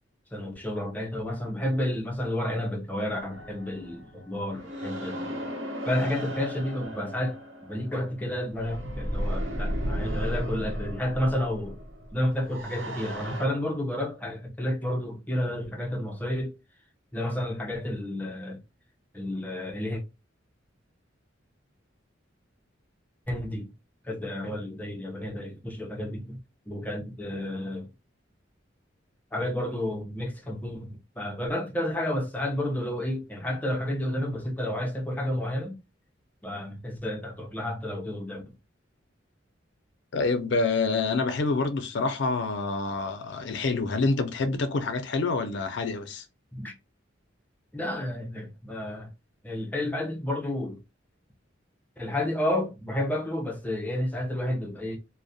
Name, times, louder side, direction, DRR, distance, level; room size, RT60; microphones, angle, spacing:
voice 1, 0.3-5.5 5.8-7.4 7.7-11.8 12.1-16.5 17.1-18.6 19.1-20.0 23.3-23.7 24.0-26.4 26.7-27.9 29.3-35.8 36.4-38.4 46.5-46.7 47.7-49.1 49.4-50.8 52.0-55.0, left 1 dB, 10° left, 0.5 m, -31 dB
sound 1, 3.3-13.5, equal, 75° right, 0.8 m, -35 dB
voice 2, 40.1-46.2, left 3 dB, 65° left, 0.4 m, -27 dB
2.3 x 2.1 x 2.6 m
head